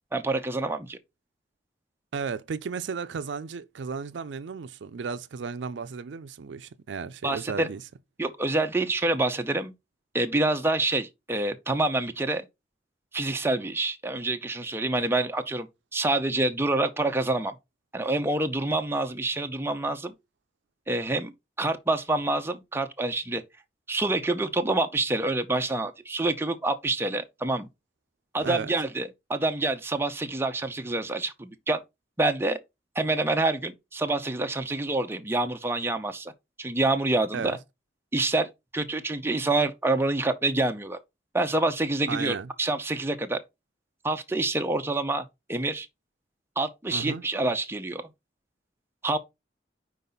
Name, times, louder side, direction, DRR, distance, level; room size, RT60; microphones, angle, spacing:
voice 1, 0.1-1.0 7.2-7.7 8.2-9.7 10.1-12.5 13.1-15.7 15.9-17.5 17.9-20.1 20.9-21.3 21.6-23.4 23.9-27.7 28.3-31.8 32.2-32.6 33.0-36.3 36.6-37.6 38.1-41.0 41.3-43.4 44.0-45.9 46.6-48.1 49.0-49.2, right 2 dB, 15° right, 0.6 m, -27 dB
voice 2, 2.1-7.8 28.4-28.8 37.3-37.6 42.1-42.5 46.9-47.2, right 5 dB, 70° right, 0.4 m, -34 dB
5.3 x 4.7 x 4.0 m
head